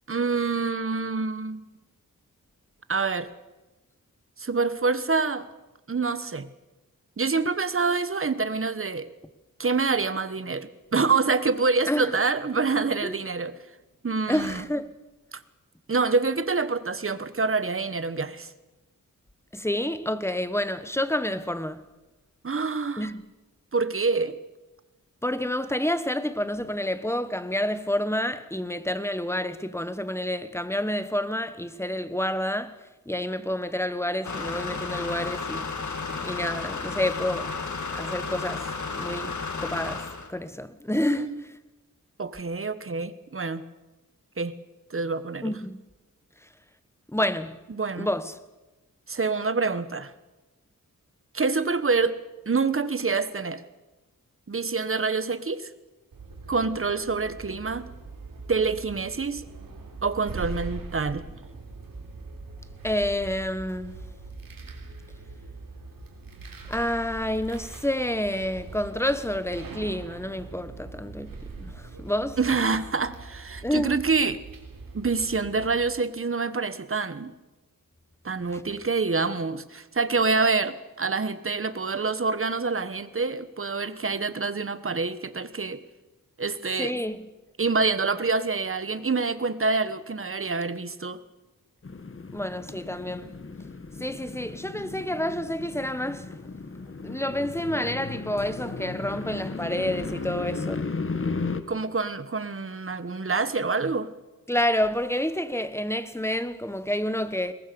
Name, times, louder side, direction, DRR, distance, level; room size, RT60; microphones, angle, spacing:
voice 1, 0.1-1.6 2.9-3.3 4.4-5.5 5.9-6.5 7.2-9.1 9.6-13.5 14.0-14.6 15.3-15.4 15.9-18.5 22.4-23.1 23.7-24.3 41.1-41.4 42.2-43.6 44.4-44.5 44.9-45.5 47.7-48.1 49.1-50.1 51.3-52.2 52.4-53.6 54.5-55.7 56.5-57.9 58.5-59.5 60.0-61.2 72.4-74.4 74.9-77.3 78.2-85.8 86.4-87.0 87.6-91.2 101.7-104.1, right 4 dB, 40° right, 1.2 m, -26 dB
voice 2, 14.3-14.9 19.5-21.8 23.0-23.2 25.2-32.8 33.1-35.7 36.2-37.5 37.9-38.7 39.0-41.3 45.4-45.8 47.1-47.6 48.0-48.4 62.8-64.0 66.7-72.4 73.6-74.0 78.5-78.6 86.8-87.2 92.3-93.3 94.0-96.3 97.0-100.9 104.5-107.5, left 1 dB, 10° left, 1.2 m, -29 dB
sound 1, 34.2-40.3, left 4 dB, 60° left, 2.0 m, -33 dB
sound 2, 56.1-75.8, right 3 dB, 90° right, 3.6 m, -42 dB
sound 3, 91.8-101.6, left 4 dB, 40° left, 1.4 m, -35 dB
22.0 x 19.5 x 6.9 m
wide cardioid pair, 90°, 33 cm